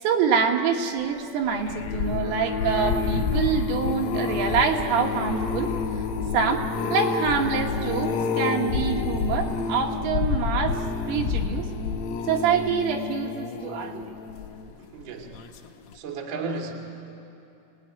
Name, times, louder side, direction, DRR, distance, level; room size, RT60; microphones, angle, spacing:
voice 1, 0.0-5.7 6.3-10.8 11.1-11.7 12.3-14.1, right 6 dB, 75° right, 2 dB, 3.9 m, -25 dB
sound 1, 1.5-14.8 15.3-15.7 15.9-16.0, left 5 dB, 85° left, 3.9 m, -28 dB
voice 2, 14.8-15.4 15.9-16.7, right 4 dB, 35° right, -1 dB, 2.2 m, -34 dB
28.0 x 19.0 x 9.8 m, 2.9 s
omnidirectional pair, 6.0 m